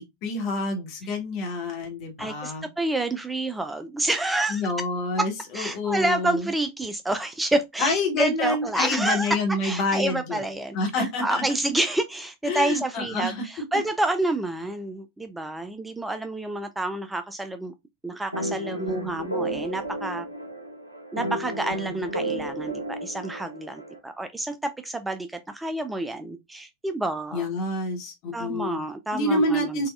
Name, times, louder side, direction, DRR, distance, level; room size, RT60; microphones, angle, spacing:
voice 1, 0.0-2.7 4.5-6.5 7.8-10.4 10.7-11.4 12.4-13.4 27.3-28.8 29.1-29.9, left 2 dB, 40° left, 1.1 m, -27 dB
voice 2, 2.2-4.6 5.2-5.3 5.5-9.4 9.6-17.7 18.0-20.3 21.1-27.5 28.3-29.9, right 2 dB, 5° right, 0.3 m, -28 dB
sound 1, 18.3-24.0, right 1 dB, 85° right, 0.6 m, -33 dB
3.9 x 2.3 x 2.3 m
figure-of-eight pair, 90°, 0 cm